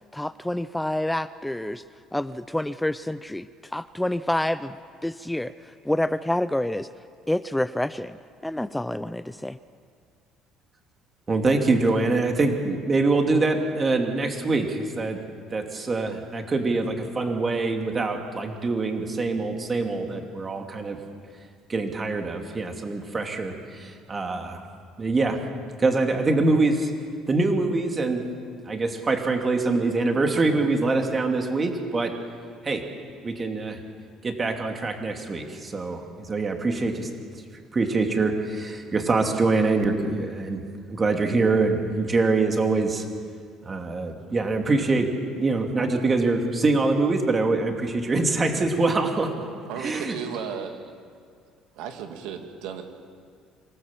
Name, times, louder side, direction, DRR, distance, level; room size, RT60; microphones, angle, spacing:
voice 1, 0.1-1.8 2.1-3.5 3.7-4.7 5.0-5.5 5.8-6.9 7.3-8.2 8.4-9.6, left 1 dB, 5° left, 14 dB, 0.5 m, -27 dB
voice 2, 11.3-15.2 15.5-21.0 21.7-24.6 25.0-25.4 25.8-26.9 27.3-28.3 28.6-32.1 32.6-32.8 33.2-33.8 34.2-37.1 37.7-40.6 40.9-43.0 43.6-49.3 49.8-50.2, right 3 dB, 25° right, 3 dB, 2.9 m, -24 dB
voice 3, 49.7-50.8 51.7-52.8, right 7 dB, 85° right, 4 dB, 2.7 m, -34 dB
26.0 x 18.5 x 7.6 m, 2.2 s
cardioid pair, 110°, 0 cm